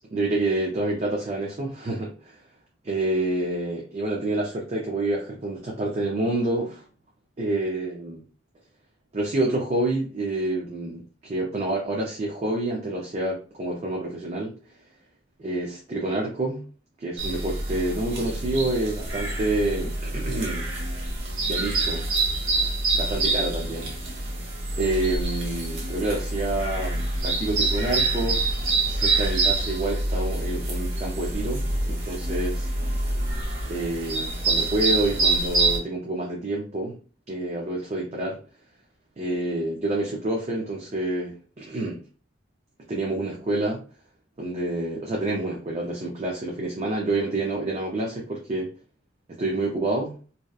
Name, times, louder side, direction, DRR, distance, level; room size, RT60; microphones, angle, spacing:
voice 1, 0.1-2.4 2.8-6.8 7.4-8.2 9.1-14.5 15.4-16.6 17.0-20.7 21.5-22.0 22.9-23.9 24.8-28.4 28.8-32.7 33.7-37.0 37.3-38.4 39.2-42.0 42.9-43.8 44.4-48.7 49.3-50.2, right 2 dB, 35° right, -1 dB, 0.4 m, -28 dB
sound 1, 17.2-35.8, right 2 dB, 75° right, 0.9 m, -26 dB
2.7 x 2.1 x 2.3 m, 0.37 s
head